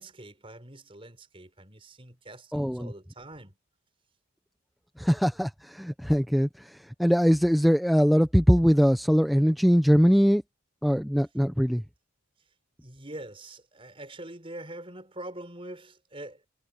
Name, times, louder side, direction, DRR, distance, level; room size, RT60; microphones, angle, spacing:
voice 1, 0.0-3.6 12.8-16.5, right 1 dB, 25° right, 4.7 m, -44 dB
voice 2, 2.5-2.9 5.0-10.4 10.8-11.8, equal, ahead, 0.9 m, -22 dB
head